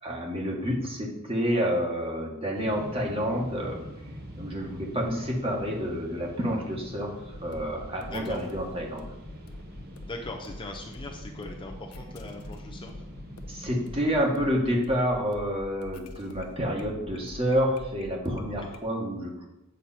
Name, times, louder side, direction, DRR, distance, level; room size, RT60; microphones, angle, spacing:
voice 1, 0.0-3.8 4.4-7.2 7.4-9.1 13.5-19.5, equal, 25° right, -1 dB, 1.7 m, -29 dB
sound 1, 2.5-14.6, equal, 45° right, 1.2 m, -44 dB
sound 2, 7.3-18.8, left 1 dB, 70° left, 0.9 m, -46 dB
voice 2, 8.1-8.4 10.0-12.9, left 2 dB, 20° left, 2 dB, 0.7 m, -40 dB
8.3 x 6.2 x 4.4 m, 0.91 s
head